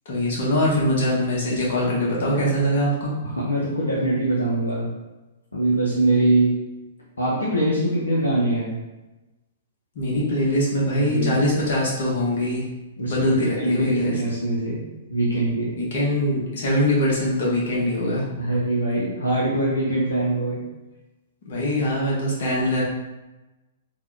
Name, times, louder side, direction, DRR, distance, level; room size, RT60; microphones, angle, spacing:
voice 1, 0.1-3.1 9.9-12.6 13.0-14.2 15.7-18.2 21.5-22.8, left 1 dB, 55° left, -5 dB, 1.1 m, -22 dB
voice 2, 3.3-4.9 5.5-6.5 7.2-8.8 11.0-11.5 13.0-14.8 15.1-15.7 18.4-20.6, right 1 dB, 80° left, -7 dB, 0.7 m, -23 dB
3.6 x 2.3 x 3.2 m, 1.1 s
figure-of-eight pair, 110°, 0 cm